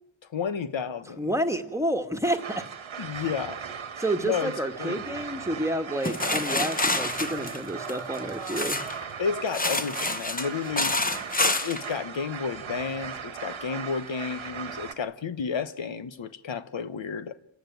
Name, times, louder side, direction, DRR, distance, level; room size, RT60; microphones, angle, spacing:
voice 1, 0.3-1.3 3.0-3.6 4.2-4.5 4.8-5.0 9.2-10.9 11.4-17.5, left 6 dB, 75° left, 1.2 m, -31 dB
voice 2, 1.2-2.6 4.0-8.8, right 1 dB, 5° right, 1.7 m, -29 dB
sound 1, 2.2-14.9, right 7 dB, 85° right, 1.5 m, -38 dB
sound 2, 6.0-9.0 9.5-11.8, left 2 dB, 20° left, 1.0 m, -28 dB
28.0 x 15.0 x 9.3 m
wide cardioid pair, 100°, 46 cm